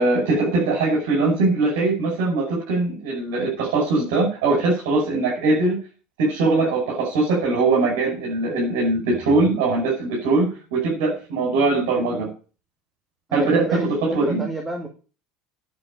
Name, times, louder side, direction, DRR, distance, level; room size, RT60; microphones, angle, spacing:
voice 1, 0.0-5.8 6.2-12.3 13.3-14.4, right 3 dB, 85° right, -2 dB, 5.7 m, -21 dB
voice 2, 13.3-14.9, right 2 dB, 10° right, 2 dB, 2.1 m, -29 dB
9.8 x 6.5 x 8.6 m, 0.36 s
supercardioid pair, 135°, 0 cm